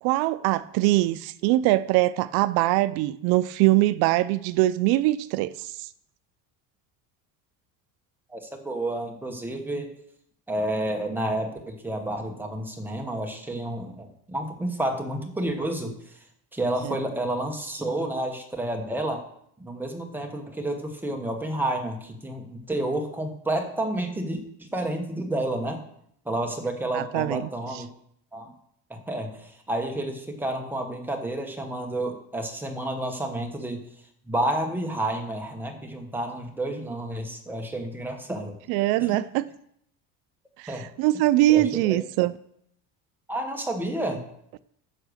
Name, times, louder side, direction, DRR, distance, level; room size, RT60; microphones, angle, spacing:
voice 1, 0.0-5.9 16.8-17.0 26.9-27.4 38.7-39.4 40.6-42.3, right 16 dB, 70° right, 16 dB, 0.5 m, -22 dB
voice 2, 8.3-9.9 10.5-16.2 16.5-19.2 19.6-25.8 26.2-27.9 28.3-28.5 28.9-33.8 34.3-38.6 39.0-39.2 40.7-40.9 41.5-42.0 43.3-44.2, right 1 dB, 5° right, 3 dB, 1.0 m, -30 dB
9.9 x 6.4 x 6.3 m, 0.71 s
cardioid pair, 175°, 39 cm